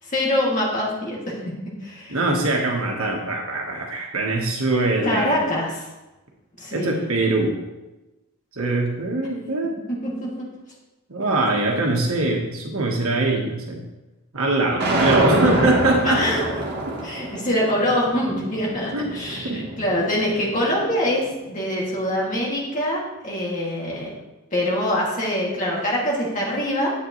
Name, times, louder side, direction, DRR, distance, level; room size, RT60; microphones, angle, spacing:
voice 1, 0.0-1.3 1.8-2.2 5.0-5.9 6.6-7.0 10.0-10.5 16.0-16.5 17.0-24.1 24.5-26.9, left 1 dB, 35° left, -4 dB, 2.5 m, -24 dB
voice 2, 2.1-5.4 6.7-7.5 8.5-9.8 11.1-13.8 14.3-16.2 18.9-19.1 19.4-19.6, right 2 dB, 75° right, 0 dB, 1.5 m, -22 dB
sound 1, 14.8-20.9, right 1 dB, 50° right, 1.4 m, -26 dB
9.8 x 8.2 x 3.2 m, 1.1 s
head